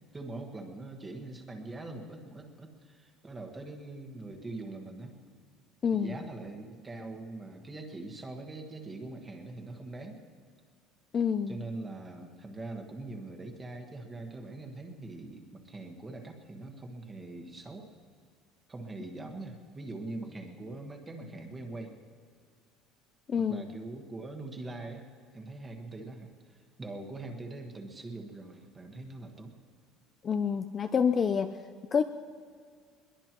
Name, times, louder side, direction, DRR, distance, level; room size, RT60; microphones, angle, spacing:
voice 1, 0.1-5.1 5.9-10.2 11.5-17.9 18.7-22.0 23.5-25.1 25.3-29.5, right 2 dB, 15° right, 3 dB, 1.4 m, -42 dB
voice 2, 5.8-6.2 11.1-11.6 23.3-23.7 30.2-31.6 31.9-32.0, left 6 dB, 25° left, 9 dB, 0.4 m, -27 dB
21.5 x 21.5 x 3.0 m, 2.1 s
cardioid pair, 175°, 0 cm